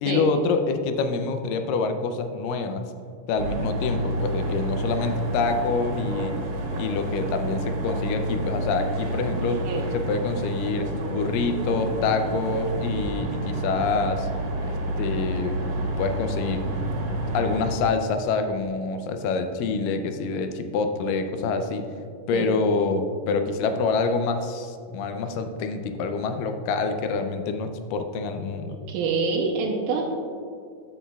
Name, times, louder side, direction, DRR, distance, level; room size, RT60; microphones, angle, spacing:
voice 1, 0.0-2.8 3.3-6.3 6.7-9.6 9.9-14.3 14.7-15.6 16.0-16.6 17.3-21.8 22.3-28.8, left 4 dB, 80° left, 7 dB, 2.2 m, -26 dB
sound 1, 3.4-17.8, right 1 dB, 70° right, 2.4 m, -29 dB
voice 2, 9.4-9.9 22.3-22.5 28.9-30.0, right 4 dB, 90° right, -2 dB, 2.6 m, -26 dB
12.0 x 7.1 x 2.3 m, 2.3 s
omnidirectional pair, 3.9 m